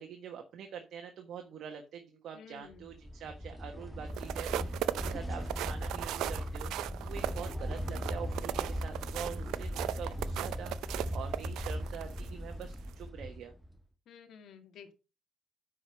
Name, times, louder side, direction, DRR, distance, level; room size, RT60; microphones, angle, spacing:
voice 1, 0.0-13.5, right 8 dB, 70° right, 4 dB, 1.4 m, -45 dB
voice 2, 2.3-2.9 7.4-7.5 14.1-14.9, left 6 dB, 75° left, 7 dB, 2.0 m, -52 dB
sound 1, 2.8-13.8, equal, ahead, 1.5 m, -39 dB
sound 2, 4.1-12.3 12.7-12.9, right 13 dB, 90° right, 0.5 m, -37 dB
9.6 x 5.0 x 5.2 m, 0.31 s
cardioid pair, 90°, 0 cm